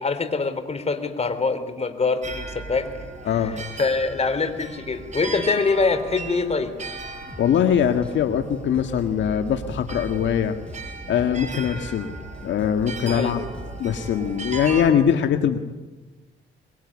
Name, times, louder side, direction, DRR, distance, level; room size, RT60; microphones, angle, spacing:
voice 1, 0.0-2.9 3.4-3.5 3.8-6.7 13.0-13.3, left 4 dB, 30° left, 9 dB, 3.6 m, -24 dB
sound 1, 2.2-14.8, right 3 dB, 35° right, 4.8 m, -37 dB
voice 2, 3.3-3.6 7.4-10.6 11.1-12.1 12.4-13.5 13.8-15.6, left 8 dB, 70° left, 7 dB, 1.8 m, -22 dB
sound 2, 7.3-14.9, equal, 5° left, 5.6 m, -42 dB
24.0 x 22.0 x 9.7 m, 1.2 s
cardioid pair, 90°, 20 cm